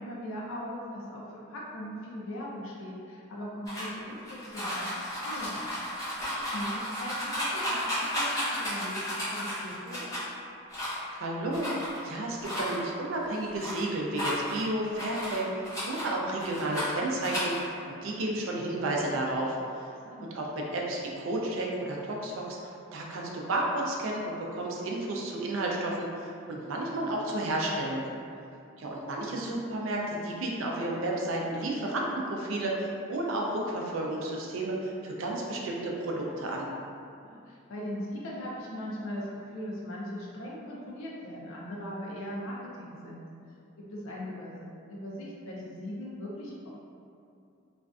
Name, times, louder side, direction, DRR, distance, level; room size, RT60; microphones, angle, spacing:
voice 1, 0.0-5.6 6.2-9.0 9.3-10.1 20.1-20.3 29.4-29.6 37.2-43.2 43.8-46.7, equal, 80° left, -4 dB, 0.4 m, -39 dB
sound 1, 3.7-10.2 10.7-11.1 11.5-12.1 12.4-12.7 13.2-13.8 14.1-16.0 16.4-16.9 17.2-17.6, equal, 15° left, 0.6 m, -33 dB
voice 2, 11.1-15.4 15.8-19.6 20.2-22.6 22.9-28.0 28.8-36.7, right 1 dB, 75° right, -1 dB, 0.4 m, -32 dB
2.4 x 2.2 x 2.3 m, 2.5 s
head